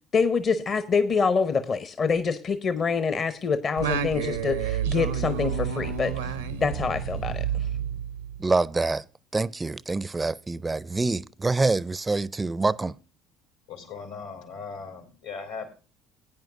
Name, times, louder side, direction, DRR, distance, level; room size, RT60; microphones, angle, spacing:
voice 1, 0.1-7.7, left 5 dB, 45° left, 0.8 m, -26 dB
Singing, 3.8-8.5, right 8 dB, 85° right, 0.6 m, -29 dB
voice 2, 8.4-9.1 9.3-13.0, right 3 dB, 20° right, 0.4 m, -26 dB
voice 3, 13.7-15.7, left 5 dB, 85° left, 3.3 m, -38 dB
18.0 x 9.1 x 2.5 m
hypercardioid pair, 60°, 0 cm